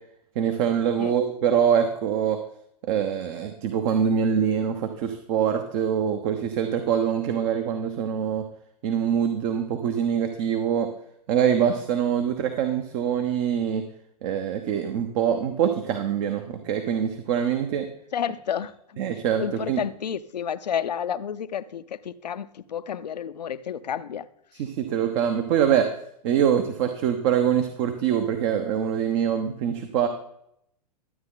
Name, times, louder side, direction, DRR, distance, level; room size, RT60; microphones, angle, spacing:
voice 1, 0.3-2.4 2.9-8.4 8.8-10.9 11.3-13.8 14.2-17.8 19.0-19.8 24.6-25.8 26.2-30.1, right 8 dB, 50° right, 1.1 m, -24 dB
voice 2, 18.1-19.0 19.4-24.3, left 8 dB, 85° left, 0.7 m, -31 dB
12.5 x 8.6 x 3.9 m
hypercardioid pair, 110°, 21 cm